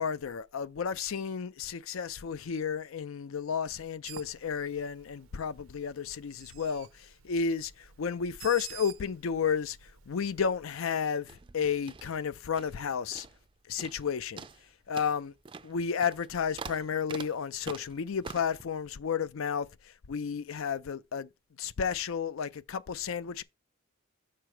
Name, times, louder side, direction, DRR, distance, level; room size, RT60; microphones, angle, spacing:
voice 1, 0.0-7.7 8.0-13.3 13.7-14.5 14.9-15.3 15.6-21.3 21.6-23.4, left 6 dB, 80° left, 0.5 m, -32 dB
Bird, 4.0-10.7, right 10 dB, 85° right, 0.6 m, -51 dB
sound 1, 11.2-12.8 13.1-13.5 13.8-14.1 14.4-18.6, right 5 dB, 25° right, 0.4 m, -45 dB
6.7 x 4.8 x 4.4 m
head